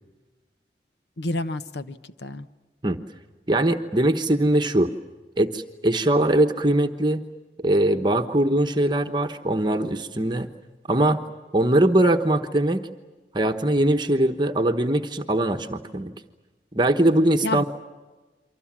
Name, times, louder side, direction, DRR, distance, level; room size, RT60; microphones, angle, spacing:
voice 1, 1.2-2.5 17.4-17.6, left 2 dB, 75° left, 11 dB, 1.0 m, -29 dB
voice 2, 3.5-4.9 5.4-7.2 7.6-10.5 10.9-11.2 11.5-12.9 13.3-16.1 16.7-17.6, right 1 dB, 25° right, 5 dB, 1.1 m, -21 dB
29.0 x 24.5 x 7.4 m, 1.2 s
head